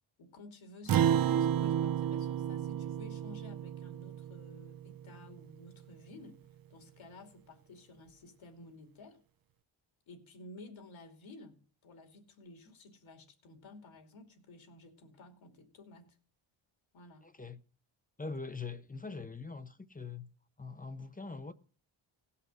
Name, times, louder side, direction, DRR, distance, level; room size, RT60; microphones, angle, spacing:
voice 1, 0.2-6.4 6.7-9.2 10.1-16.2 16.9-17.3 18.2-18.4, left 2 dB, 65° left, 2.8 m, -53 dB
Acoustic guitar, 0.9-5.6, right 10 dB, 45° right, 0.6 m, -32 dB
voice 2, 17.2-17.6 18.2-20.3 20.6-21.5, left 4 dB, 15° left, 0.7 m, -43 dB
17.0 x 5.7 x 6.1 m
cardioid pair, 85°, 50 cm